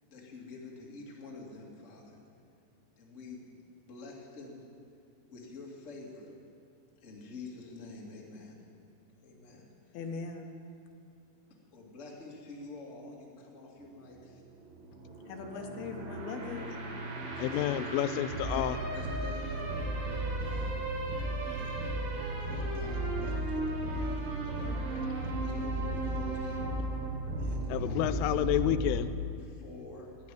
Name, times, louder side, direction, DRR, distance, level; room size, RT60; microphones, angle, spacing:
voice 1, 0.0-2.2 3.0-3.5 3.8-4.7 5.3-6.4 7.0-8.6 9.2-10.0 11.5-14.4 17.2-19.8 20.4-20.9 21.4-21.9 22.4-24.8 25.2-26.9 27.4-28.1 29.4-30.2, left 3 dB, 45° left, -2 dB, 0.9 m, -47 dB
voice 2, 9.9-10.5 15.3-16.8, left 4 dB, 70° left, 3 dB, 2.4 m, -40 dB
sound 1, 13.8-29.0, right 2 dB, 75° right, 5.0 m, -35 dB
voice 3, 17.4-18.8 27.7-29.6, left 12 dB, 90° left, 12 dB, 3.1 m, -30 dB
12.5 x 11.0 x 10.0 m, 2.4 s
omnidirectional pair, 5.6 m